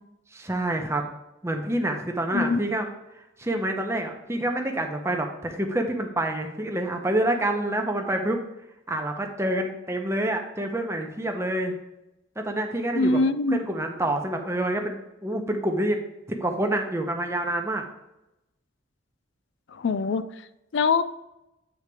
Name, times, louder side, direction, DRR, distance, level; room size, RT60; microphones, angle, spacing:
voice 1, 0.3-1.0 1.4-2.9 3.4-8.4 8.9-11.8 12.4-13.2 13.5-17.8, right 1 dB, 15° right, 3 dB, 0.8 m, -27 dB
voice 2, 12.9-13.6 19.7-20.2 20.7-21.0, left 3 dB, 65° left, 13 dB, 0.4 m, -23 dB
8.4 x 4.0 x 4.8 m, 0.91 s
head